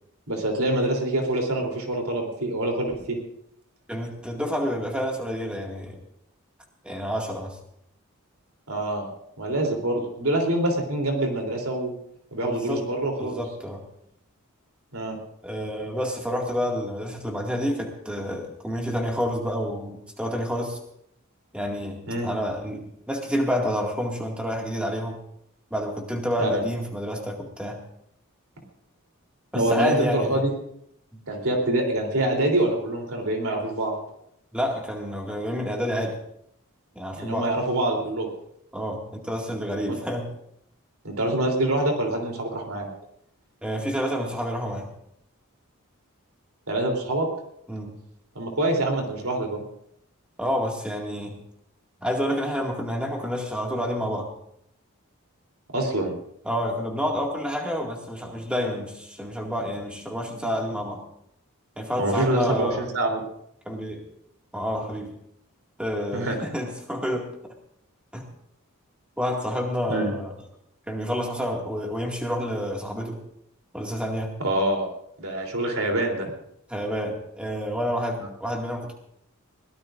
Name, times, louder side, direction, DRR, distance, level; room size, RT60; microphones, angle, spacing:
voice 1, 0.3-3.2 8.7-9.0 9.4-11.9 12.3-13.4 14.9-15.2 22.1-22.3 26.4-26.5 29.5-30.5 31.3-33.9 37.2-38.3 41.0-42.9 46.7-47.3 48.4-49.6 55.7-56.1 62.0-63.2 66.1-66.4 69.9-70.1 74.4-74.9 75.2-76.3, right 1 dB, 80° right, 1 dB, 3.4 m, -25 dB
voice 2, 3.9-6.0 6.8-7.6 12.5-12.9 13.2-13.8 15.4-20.8 21.5-22.0 22.2-25.2 25.7-27.8 29.5-30.4 31.1-31.2 34.5-36.2 37.0-37.5 38.7-40.3 43.6-44.9 47.7-47.9 50.4-51.4 52.0-54.3 56.4-61.0 61.8-62.8 63.7-64.1 64.5-65.1 65.8-67.3 68.1-68.2 69.2-70.3 70.9-73.2 73.7-74.3 76.7-79.0, equal, 5° right, 0 dB, 2.1 m, -29 dB
22.5 x 17.0 x 2.6 m, 0.74 s
head